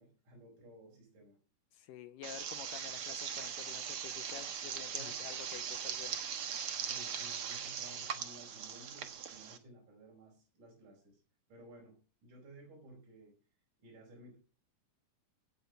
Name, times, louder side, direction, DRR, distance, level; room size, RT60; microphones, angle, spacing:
voice 1, 0.0-1.4 4.9-5.3 6.8-11.2 11.5-13.3 13.8-14.4, right 1 dB, 50° right, -1 dB, 6.2 m, -56 dB
voice 2, 1.7-6.3, left 10 dB, 80° left, 12 dB, 2.0 m, -50 dB
sound 1, 2.2-9.6, right 8 dB, 70° right, 1.3 m, -40 dB
17.5 x 8.3 x 5.3 m, 0.37 s
omnidirectional pair, 4.6 m